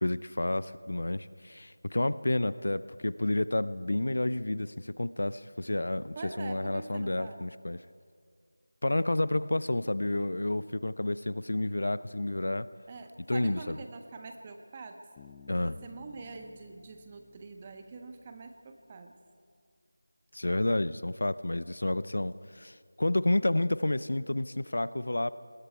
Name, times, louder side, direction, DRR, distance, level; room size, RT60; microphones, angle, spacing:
voice 1, 0.0-7.8 8.8-12.7 13.3-13.8 15.5-15.8 20.3-25.3, left 1 dB, 60° left, 16 dB, 0.7 m, -30 dB
voice 2, 6.1-7.4 12.9-15.0 15.6-19.1, right 3 dB, 20° right, 6 dB, 1.2 m, -45 dB
Bass guitar, 15.2-18.8, left 6 dB, 15° left, 0.6 m, -55 dB
28.0 x 20.5 x 4.6 m, 2.1 s
figure-of-eight pair, 170°, 0 cm